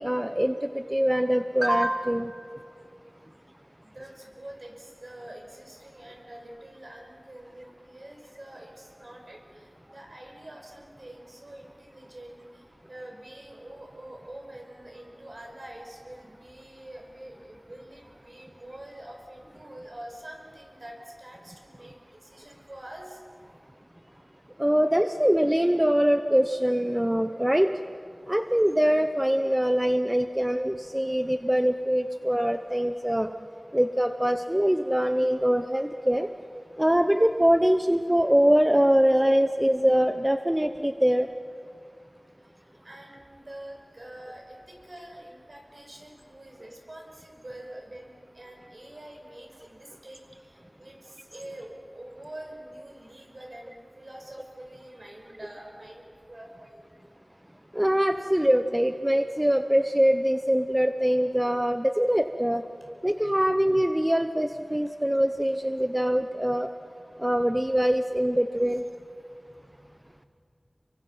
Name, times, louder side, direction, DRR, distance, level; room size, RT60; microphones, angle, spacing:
voice 1, 0.0-2.3 24.6-27.7 28.3-33.3 33.7-36.3 36.8-41.3 57.7-62.6 63.0-66.7 67.2-68.8, equal, 15° right, 8 dB, 0.8 m, -23 dB
voice 2, 3.8-23.2 24.7-24.8 42.4-56.8 62.8-62.9 63.2-63.4 70.0-70.3, right 1 dB, 55° right, 1 dB, 5.5 m, -46 dB
30.0 x 23.5 x 5.8 m, 2.3 s
wide cardioid pair, 55°, 0 cm